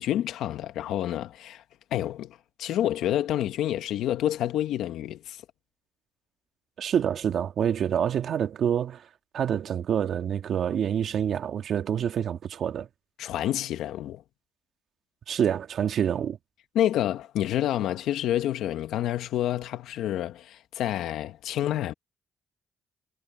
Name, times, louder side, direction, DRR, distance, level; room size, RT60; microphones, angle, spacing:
voice 1, 0.0-1.6 1.9-5.4 13.2-14.2 16.7-21.9, left 12 dB, 85° left, 1.6 m, -28 dB
voice 2, 6.8-9.0 9.3-12.9 15.3-16.4, right 9 dB, 70° right, 1.9 m, -27 dB
supercardioid pair, 60°, 0 cm